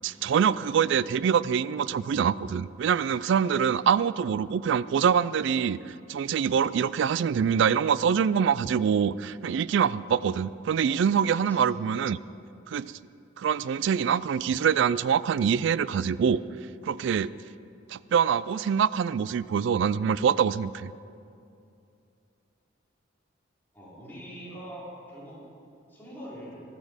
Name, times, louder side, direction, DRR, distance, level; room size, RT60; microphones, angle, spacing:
voice 1, 0.0-12.2 12.7-12.9 13.4-16.4 16.8-17.3 17.9-20.9, right 7 dB, 65° right, 18 dB, 0.3 m, -25 dB
voice 2, 23.7-25.4 25.9-26.6, equal, 10° left, -8 dB, 3.7 m, -43 dB
13.5 x 12.5 x 5.1 m, 2.5 s
head